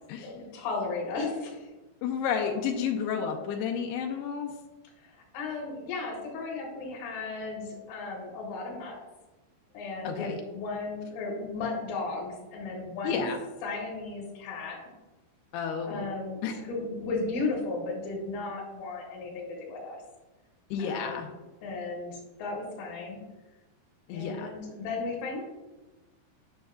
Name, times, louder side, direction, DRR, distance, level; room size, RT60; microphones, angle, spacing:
voice 1, 0.2-1.7 5.0-9.0 9.7-13.3 13.6-14.8 15.8-20.0 20.8-21.2 21.6-23.2 24.1-25.4, left 3 dB, 70° left, -3 dB, 3.2 m, -35 dB
voice 2, 2.0-4.5 10.0-10.4 13.0-13.4 15.5-16.0 16.4-16.6 20.7-21.3 24.1-24.5, left 7 dB, 90° left, 3 dB, 2.3 m, -31 dB
10.0 x 6.3 x 2.3 m, 1.1 s
omnidirectional pair, 5.2 m